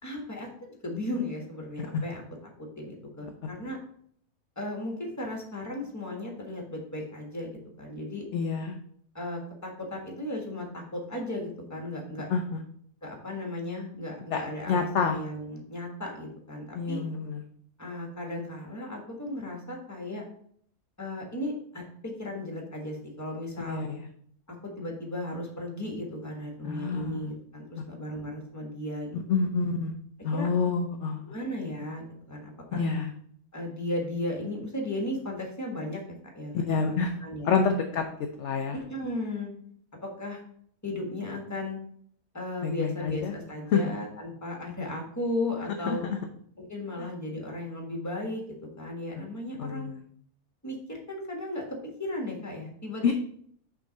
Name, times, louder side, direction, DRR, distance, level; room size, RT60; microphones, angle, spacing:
voice 1, 0.0-2.2 2.6-3.8 4.5-8.2 9.1-12.3 13.0-17.0 17.8-20.2 21.0-23.8 24.6-29.1 30.3-30.5 31.3-32.8 33.5-37.6 38.9-39.5 39.9-40.4 40.8-41.8 42.3-46.0 46.6-48.4 48.8-49.9 50.6-53.1, left 1 dB, 10° left, 0 dB, 1.4 m, -35 dB
voice 2, 8.3-8.8 12.3-12.6 14.3-14.4 14.7-15.2 16.7-17.4 23.7-24.1 26.6-27.3 29.1-29.9 30.2-31.2 32.7-33.1 36.5-38.1 38.4-38.8 42.6-43.3 43.7-43.8 45.9-46.2 47.0-47.1 49.6-50.0 53.0-53.1, left 5 dB, 60° left, 4 dB, 0.8 m, -28 dB
6.0 x 3.7 x 5.2 m, 0.63 s
omnidirectional pair, 1.6 m